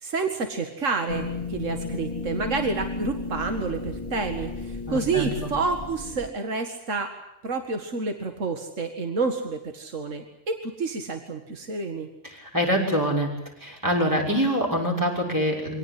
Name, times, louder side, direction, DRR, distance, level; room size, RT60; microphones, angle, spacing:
voice 1, 0.0-7.1 7.4-12.1, right 4 dB, 80° right, 5 dB, 2.3 m, -29 dB
sound 1, 1.1-6.3, left 3 dB, 30° left, 3.3 m, -34 dB
voice 2, 4.9-5.5 12.3-13.3 13.6-15.8, equal, 15° right, -1 dB, 6.4 m, -25 dB
25.5 x 18.0 x 9.8 m, 0.84 s
omnidirectional pair, 1.3 m